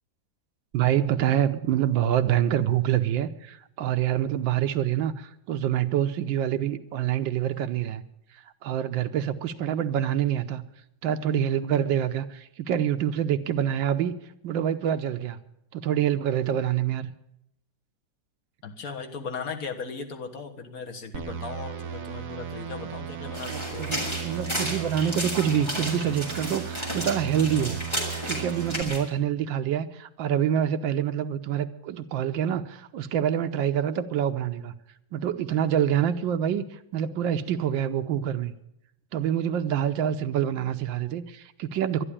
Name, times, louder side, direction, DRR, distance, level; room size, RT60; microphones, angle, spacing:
voice 1, 0.7-8.0 8.6-10.6 11.0-14.1 14.4-15.4 15.7-17.1 23.5-27.8 28.3-34.7 35.1-38.5 39.1-42.0, right 10 dB, 75° right, 10 dB, 1.4 m, -26 dB
voice 2, 18.6-23.9, left 5 dB, 50° left, 5 dB, 1.8 m, -37 dB
sound 1, 21.1-28.8, right 8 dB, 50° right, 1.3 m, -36 dB
sound 2, 23.3-29.0, equal, 15° left, 3.7 m, -33 dB
12.0 x 11.0 x 9.9 m, 0.80 s
omnidirectional pair, 2.1 m